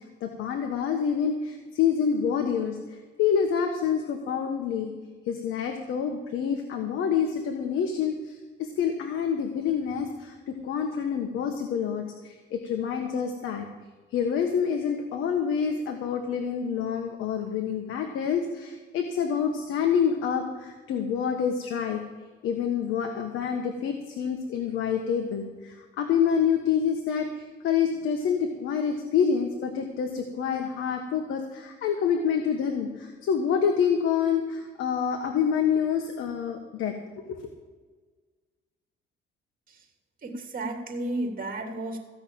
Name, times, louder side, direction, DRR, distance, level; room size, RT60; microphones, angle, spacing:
voice 1, 0.2-2.8 3.2-4.9 5.3-13.7 14.1-22.0 22.4-37.5, left 7 dB, 85° left, 4 dB, 1.3 m, -27 dB
voice 2, 40.2-42.0, right 2 dB, 45° right, 3 dB, 2.8 m, -32 dB
15.5 x 6.2 x 8.7 m, 1.4 s
cardioid pair, 90°, 20 cm